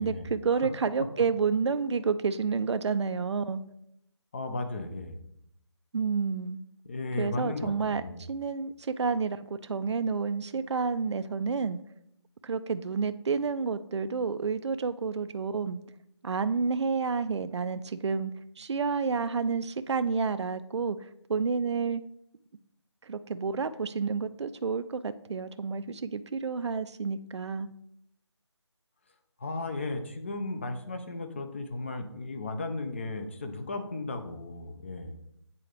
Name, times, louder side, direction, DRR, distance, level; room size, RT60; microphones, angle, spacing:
voice 1, 0.0-3.6 5.9-6.6 7.2-8.0 8.3-11.8 12.4-15.8 16.2-18.3 18.6-22.0 23.0-27.7, right 5 dB, 70° right, 12 dB, 0.4 m, -30 dB
voice 2, 4.3-5.2 6.8-8.2 29.4-35.1, left 2 dB, 25° left, 7 dB, 0.5 m, -35 dB
8.3 x 3.8 x 3.3 m, 0.76 s
figure-of-eight pair, 160°, 15 cm